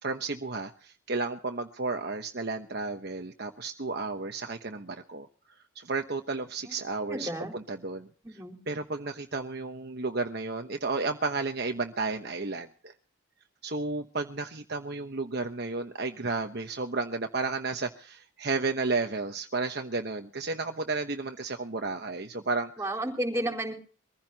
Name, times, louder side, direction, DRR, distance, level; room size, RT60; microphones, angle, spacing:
voice 1, 0.0-5.3 5.7-8.1 8.7-12.9 13.6-22.7, right 3 dB, 50° right, 5 dB, 1.1 m, -32 dB
voice 2, 7.1-7.5 8.2-8.6 22.8-23.7, right 1 dB, 15° right, 1 dB, 4.2 m, -32 dB
24.0 x 15.5 x 2.9 m, 0.40 s
head